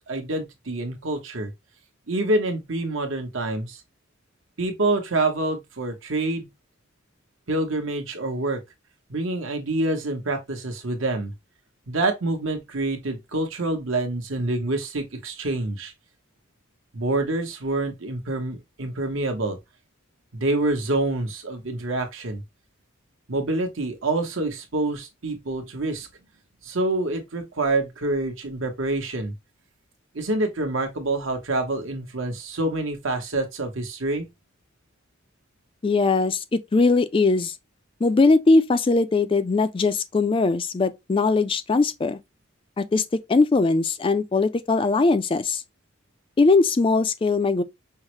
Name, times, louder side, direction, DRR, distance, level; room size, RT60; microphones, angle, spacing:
voice 1, 0.0-1.5 2.1-3.8 4.6-6.5 7.5-8.6 9.1-11.3 11.9-15.9 16.9-19.6 20.3-22.4 23.3-26.1 26.6-29.3 30.1-34.3, right 2 dB, 70° right, 1.0 m, -26 dB
voice 2, 35.8-37.5 38.0-42.2 42.8-43.0 43.3-45.6 46.4-47.6, left 3 dB, 25° left, 0.3 m, -20 dB
5.5 x 2.1 x 3.0 m
head